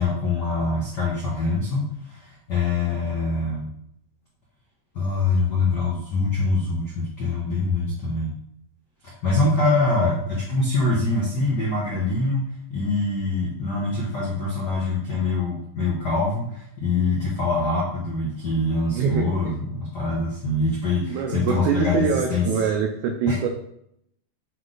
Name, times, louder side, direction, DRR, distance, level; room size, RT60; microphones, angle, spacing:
voice 1, 0.0-3.7 4.9-8.3 9.0-22.5 23.3-23.5, left 3 dB, 75° left, -5 dB, 0.9 m, -24 dB
voice 2, 18.9-19.5 21.1-23.5, right 6 dB, 75° right, 2 dB, 1.8 m, -24 dB
8.2 x 3.2 x 3.9 m, 0.73 s
omnidirectional pair, 4.0 m